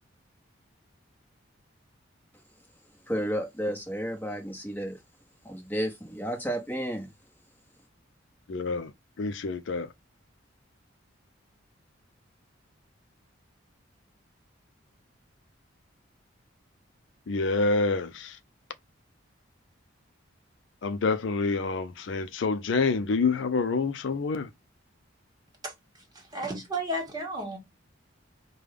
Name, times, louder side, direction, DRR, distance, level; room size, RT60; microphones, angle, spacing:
voice 1, 3.1-5.0 5.4-7.1, equal, 10° left, 1.0 m, -32 dB
voice 2, 8.5-8.9 9.2-9.9 17.3-18.4 20.8-24.5, left 4 dB, 65° left, 0.4 m, -27 dB
voice 3, 25.6-27.6, right 1 dB, 20° right, 1.5 m, -34 dB
5.1 x 2.2 x 3.3 m
head